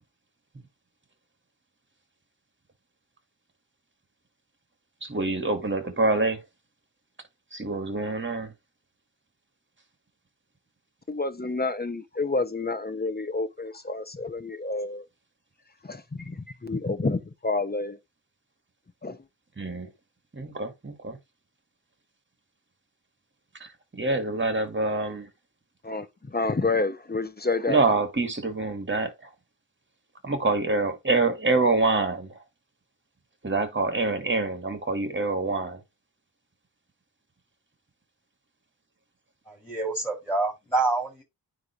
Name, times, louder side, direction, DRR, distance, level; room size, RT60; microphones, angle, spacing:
voice 1, 5.0-6.4 7.5-8.5 19.6-19.9 20.3-21.2 23.6-25.3 27.7-29.3 30.2-32.4 33.4-35.8, right 3 dB, 30° right, 2.2 m, -26 dB
voice 2, 11.1-15.0 15.8-18.0 19.0-19.2 25.8-27.9, left 3 dB, 25° left, 1.0 m, -29 dB
voice 3, 39.5-41.2, right 3 dB, 5° left, 4.6 m, -27 dB
9.5 x 3.2 x 4.5 m
wide cardioid pair, 110°, 38 cm